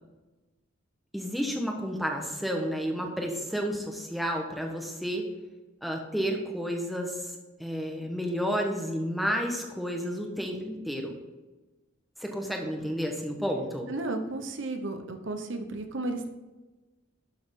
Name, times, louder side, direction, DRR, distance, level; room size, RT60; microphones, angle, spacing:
voice 1, 1.1-5.3 5.8-11.1 12.2-13.9, equal, ahead, 1 dB, 1.3 m, -31 dB
voice 2, 13.9-16.3, right 2 dB, 65° right, 6 dB, 1.0 m, -33 dB
12.0 x 7.1 x 3.8 m, 1.2 s
head